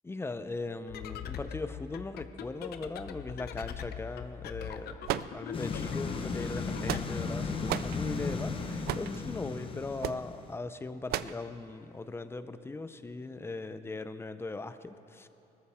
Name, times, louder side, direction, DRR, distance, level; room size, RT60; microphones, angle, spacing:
voice 1, 0.0-5.0 5.3-15.3, left 3 dB, 15° left, 11 dB, 0.6 m, -39 dB
sound 1, 0.9-7.0, left 9 dB, 70° left, 0.7 m, -42 dB
sound 2, 5.0-5.8 6.6-7.3 7.7-8.0 8.9-9.2 10.0-10.2 11.1-11.4, right 13 dB, 65° right, 0.4 m, -34 dB
sound 3, 5.5-10.6, left 4 dB, 30° left, 1.1 m, -35 dB
20.5 x 14.0 x 3.6 m, 2.9 s
cardioid pair, 110°, 17 cm